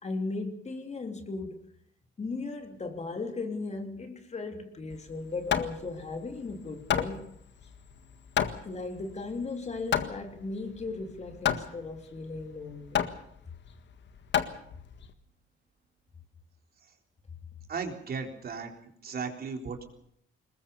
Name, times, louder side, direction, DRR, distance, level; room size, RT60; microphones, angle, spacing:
voice 1, 0.0-1.6 2.2-7.3 8.6-13.0, left 3 dB, 35° left, 3.1 m, -37 dB
Hammer, 4.9-15.1, left 9 dB, 65° left, 1.8 m, -32 dB
voice 2, 17.7-18.7 19.0-19.8, right 5 dB, 50° right, 3.9 m, -35 dB
21.0 x 21.0 x 7.0 m
cardioid pair, 90°, 20 cm